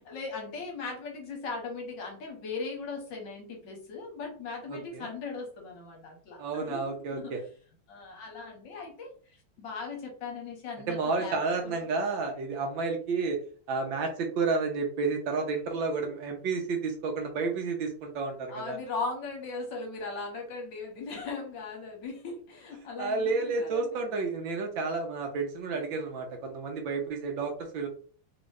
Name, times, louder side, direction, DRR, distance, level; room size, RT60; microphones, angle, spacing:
voice 1, 0.1-7.4 7.9-11.4 11.6-11.9 18.5-24.0, left 4 dB, 65° left, 1 dB, 1.4 m, -38 dB
voice 2, 4.7-5.1 6.4-7.4 10.9-13.4 13.7-18.8 23.0-27.9, right 4 dB, 70° right, 3 dB, 1.3 m, -31 dB
3.5 x 2.6 x 3.1 m, 0.43 s
omnidirectional pair, 2.4 m